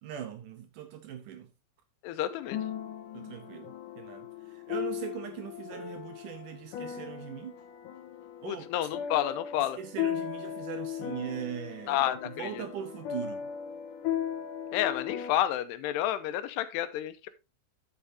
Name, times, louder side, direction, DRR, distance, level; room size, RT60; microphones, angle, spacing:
voice 1, 0.0-1.5 3.1-7.6 8.4-8.6 9.8-13.5, right 10 dB, 75° right, 2.0 m, -40 dB
voice 2, 2.0-2.6 8.5-9.8 11.9-12.6 14.7-17.3, left 12 dB, 85° left, 2.9 m, -30 dB
sound 1, 2.3-15.3, left 9 dB, 65° left, 2.2 m, -37 dB
10.0 x 8.2 x 2.7 m
omnidirectional pair, 4.7 m